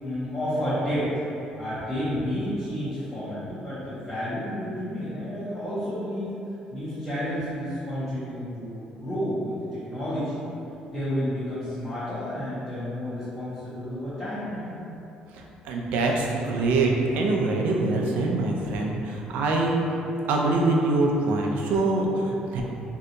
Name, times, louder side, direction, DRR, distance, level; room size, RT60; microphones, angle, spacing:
voice 1, 0.0-1.1 1.6-6.3 6.7-10.4 10.9-14.8, equal, 10° left, -13 dB, 0.6 m, -31 dB
voice 2, 15.3-19.8 20.3-22.6, right 2 dB, 85° right, 0 dB, 0.4 m, -24 dB
2.7 x 2.2 x 3.8 m, 2.9 s
cardioid pair, 180°, 3 cm